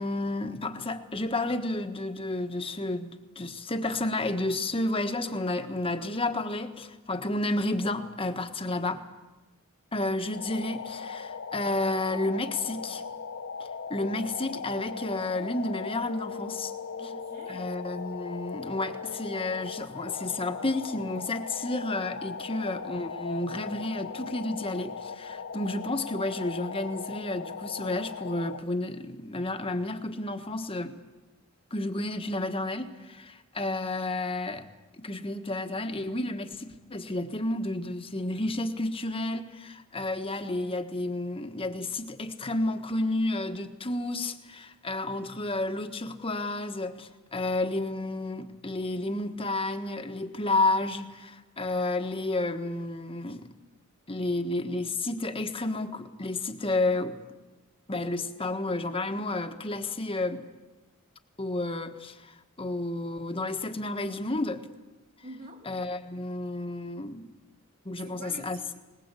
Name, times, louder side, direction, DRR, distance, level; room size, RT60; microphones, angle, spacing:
voice 1, 0.0-9.0 9.9-13.0 13.6-16.7 17.5-30.9 31.7-34.7 35.0-53.5 54.1-57.2 57.9-60.4 61.4-64.6 65.6-67.3 67.8-68.6, left 2 dB, 25° left, 7 dB, 1.4 m, -31 dB
sound 1, 10.3-28.6, left 5 dB, 60° left, 0.7 m, -38 dB
voice 2, 17.0-17.7 65.2-65.7 68.0-68.8, right 2 dB, 40° right, 4 dB, 3.3 m, -46 dB
21.5 x 20.5 x 8.3 m, 1.1 s
head